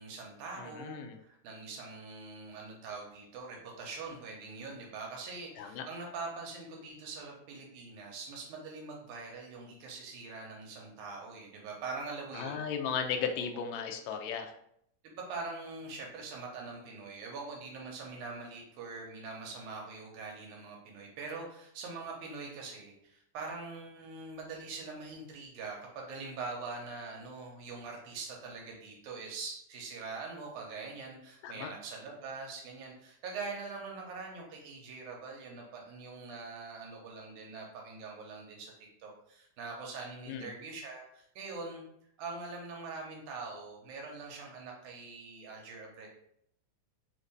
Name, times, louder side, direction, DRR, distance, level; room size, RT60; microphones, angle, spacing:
voice 1, 0.0-12.6 15.0-38.7 39.0-41.8 42.2-46.1, right 4 dB, 80° right, 0 dB, 2.3 m, -43 dB
voice 2, 0.6-1.2 5.6-5.9 12.3-14.5 31.4-31.7 40.3-40.5, left 6 dB, 80° left, 5 dB, 1.7 m, -36 dB
5.0 x 2.6 x 3.3 m, 0.71 s
omnidirectional pair, 3.6 m